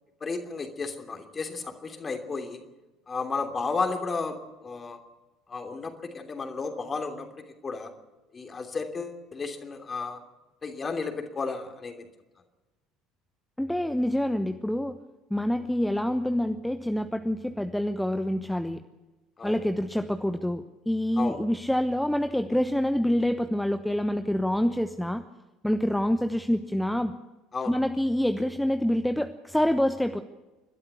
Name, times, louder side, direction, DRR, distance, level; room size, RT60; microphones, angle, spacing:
voice 1, 0.2-2.6 3.1-5.0 5.5-7.9 8.3-10.2 10.6-12.1 19.4-19.6 21.2-21.4 27.5-27.8, left 4 dB, 25° left, 6 dB, 3.1 m, -33 dB
voice 2, 13.6-15.0 15.3-18.8 19.4-25.2 25.6-27.1 27.7-30.2, left 1 dB, 5° left, 9 dB, 1.0 m, -26 dB
29.5 x 13.0 x 8.3 m, 1.1 s
figure-of-eight pair, 65°, 0 cm